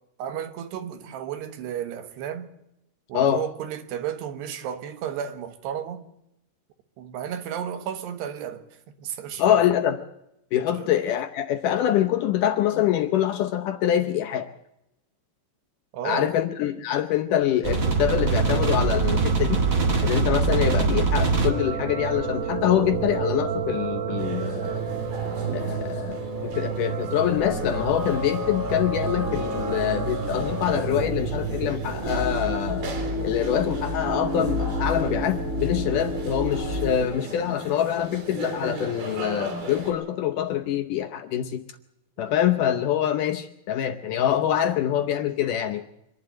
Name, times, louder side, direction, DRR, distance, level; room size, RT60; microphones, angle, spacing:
voice 1, 0.2-2.5 3.1-6.1 7.0-8.6 9.0-9.6 15.9-16.3, right 9 dB, 85° right, 3.5 m, -33 dB
voice 2, 3.1-3.5 9.4-10.0 10.5-14.5 16.0-19.6 20.0-24.8 25.5-32.9 33.2-41.6 42.2-45.8, left 10 dB, 70° left, 2.0 m, -25 dB
sound 1, 17.6-37.0, right 3 dB, 45° right, 1.0 m, -27 dB
sound 2, 24.2-39.9, right 2 dB, 70° right, 5.6 m, -37 dB
25.5 x 11.5 x 8.9 m
omnidirectional pair, 4.7 m